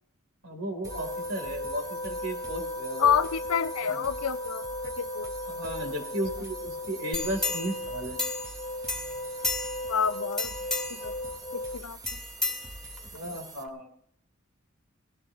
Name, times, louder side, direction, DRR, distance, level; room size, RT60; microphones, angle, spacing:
voice 1, 0.4-3.2 3.8-4.0 5.5-8.2 13.1-13.9, right 1 dB, 65° right, 3.5 m, -35 dB
sound 1, 0.8-13.6, right 2 dB, 15° right, 1.0 m, -45 dB
sound 2, 0.9-11.8, left 1 dB, 20° left, 0.4 m, -37 dB
voice 2, 3.0-5.3 9.9-10.5 10.9-11.1 11.5-12.0, left 7 dB, 75° left, 0.5 m, -28 dB
sound 3, 7.1-8.6 8.9-9.9 10.3-11.1 12.1-13.2 13.6-13.7, left 3 dB, ahead, 2.3 m, -33 dB
20.0 x 15.5 x 3.0 m
head